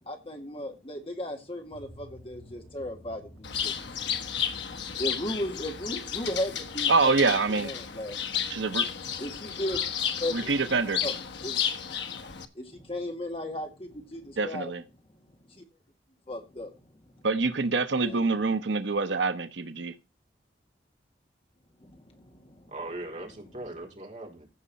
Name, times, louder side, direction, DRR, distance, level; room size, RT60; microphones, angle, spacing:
voice 1, 0.0-8.2 9.2-9.8 10.2-10.4 11.0-11.1 11.4-11.6 12.6-14.7 15.5-15.6 16.3-16.7 17.1-17.3 18.0-18.3 21.8-22.7, left 1 dB, 30° left, 2.0 m, -36 dB
sound 1, 1.7-10.2, left 1 dB, 50° left, 5.1 m, -55 dB
Bird, 3.4-12.4, left 8 dB, 85° left, 1.2 m, -32 dB
voice 2, 6.9-7.7 8.5-8.9 10.3-11.0 14.4-14.8 17.2-19.9, right 4 dB, 90° right, 0.9 m, -25 dB
voice 3, 10.2-10.5 22.7-24.5, right 2 dB, 40° right, 4.0 m, -40 dB
15.5 x 5.7 x 4.1 m
head